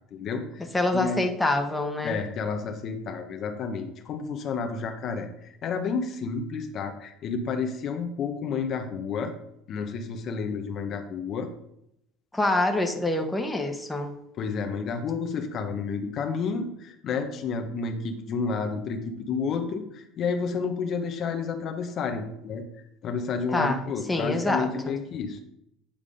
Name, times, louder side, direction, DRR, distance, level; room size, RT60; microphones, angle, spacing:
voice 1, 0.1-0.7 0.9-1.2 2.0-9.3 9.7-11.5 14.4-22.6 23.0-25.4, left 5 dB, 50° left, 5 dB, 1.0 m, -30 dB
voice 2, 0.7-2.2 12.3-14.1 23.5-23.8 24.1-25.0, left 2 dB, 10° left, 4 dB, 1.2 m, -26 dB
8.6 x 3.7 x 5.1 m, 0.79 s
supercardioid pair, 90°, 0 cm